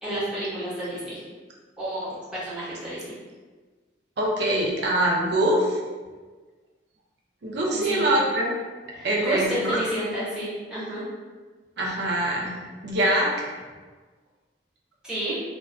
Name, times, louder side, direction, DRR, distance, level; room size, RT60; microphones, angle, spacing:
voice 1, 0.0-1.2 1.8-3.1 7.8-8.1 8.9-11.0 15.0-15.4, right 1 dB, 5° right, -12 dB, 0.9 m, -31 dB
voice 2, 4.2-5.8 7.4-8.5 9.0-9.8 11.8-12.5 12.8-13.4, right 1 dB, 60° right, -2 dB, 0.5 m, -23 dB
2.3 x 2.3 x 2.3 m, 1.4 s
head